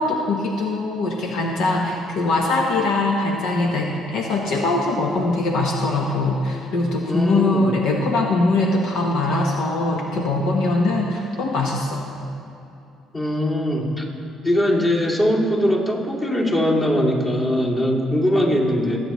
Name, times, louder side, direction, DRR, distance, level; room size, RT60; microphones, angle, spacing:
voice 1, 0.0-12.0, left 2 dB, 70° left, 0 dB, 1.0 m, -22 dB
voice 2, 7.1-7.7 13.1-14.1 14.4-19.0, equal, 30° left, -4 dB, 2.6 m, -21 dB
21.0 x 8.9 x 3.1 m, 2.7 s
cardioid pair, 95°, 0 cm